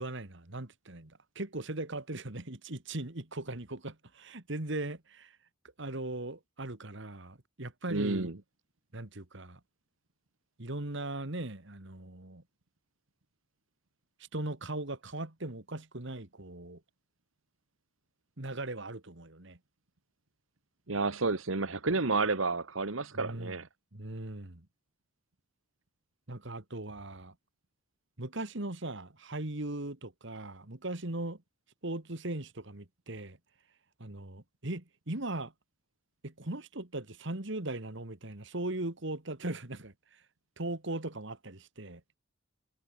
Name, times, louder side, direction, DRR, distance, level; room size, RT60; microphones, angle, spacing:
voice 1, 0.0-5.3 5.8-8.3 8.9-9.6 10.6-12.4 14.3-16.8 18.4-19.6 23.1-23.5 23.9-24.7 26.3-27.3 28.2-31.4 31.8-33.4 34.0-35.5 36.2-39.9 40.6-42.0, right 2 dB, 65° right, 2.3 m, -39 dB
voice 2, 7.9-8.3 20.9-23.7, right 3 dB, 80° right, 1.5 m, -30 dB
head